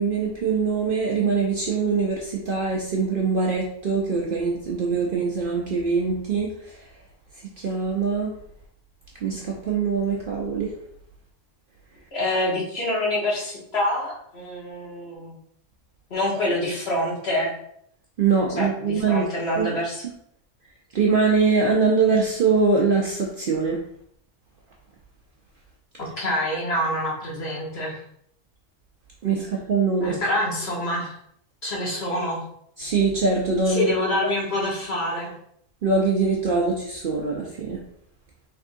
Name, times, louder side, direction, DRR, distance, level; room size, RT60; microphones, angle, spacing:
voice 1, 0.0-6.5 7.6-8.3 9.2-10.7 18.2-19.2 19.6-19.7 20.9-23.8 29.2-30.2 32.8-33.9 35.8-37.8, right 4 dB, 55° right, -2 dB, 0.6 m, -23 dB
voice 2, 12.1-15.4 16.1-17.6 18.6-20.0 26.0-28.0 30.0-31.1 31.6-32.4 33.6-35.3, left 1 dB, 55° left, -5 dB, 1.4 m, -26 dB
3.6 x 3.4 x 2.6 m, 0.68 s
omnidirectional pair, 1.3 m